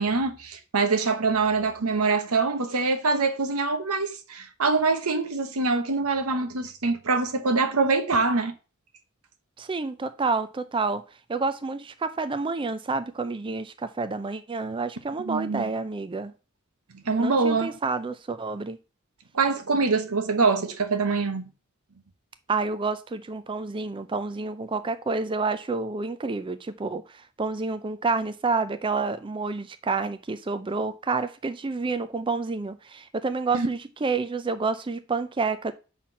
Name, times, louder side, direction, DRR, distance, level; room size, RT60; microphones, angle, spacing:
voice 1, 0.0-8.5 15.2-15.7 16.9-17.8 19.3-21.5 33.5-33.7, right 4 dB, 80° right, 1.0 m, -24 dB
voice 2, 9.6-11.0 11.3-16.3 17.2-18.8 22.5-35.7, right 4 dB, 25° right, 0.4 m, -29 dB
5.8 x 4.3 x 6.0 m
head